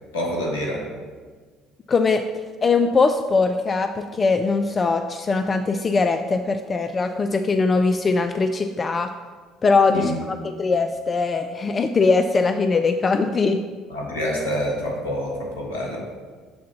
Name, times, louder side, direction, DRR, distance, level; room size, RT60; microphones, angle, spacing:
voice 1, 0.1-0.8 9.9-10.1 13.9-16.0, equal, 75° left, -2 dB, 1.5 m, -26 dB
voice 2, 1.9-2.2 2.6-9.1 9.6-13.6, left 4 dB, 30° left, 7 dB, 0.3 m, -21 dB
7.1 x 3.7 x 5.6 m, 1.5 s
figure-of-eight pair, 55°, 0 cm